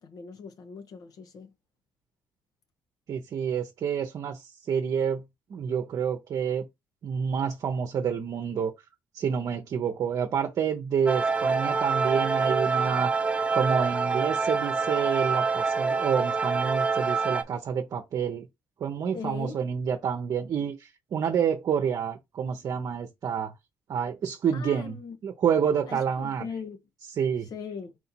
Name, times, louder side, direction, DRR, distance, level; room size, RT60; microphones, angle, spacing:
voice 1, 0.0-1.5 19.1-19.6 24.5-25.2 25.9-26.8 27.4-28.0, left 5 dB, 65° left, 1.2 m, -39 dB
voice 2, 3.1-5.2 5.5-6.6 7.0-8.7 9.1-13.1 13.5-18.5 18.8-23.5 23.9-24.9 25.2-26.4 27.2-27.5, right 7 dB, 60° right, 0.8 m, -28 dB
sound 1, 11.1-17.4, right 4 dB, 20° right, 0.8 m, -26 dB
4.4 x 2.7 x 4.4 m
supercardioid pair, 70°, 7 cm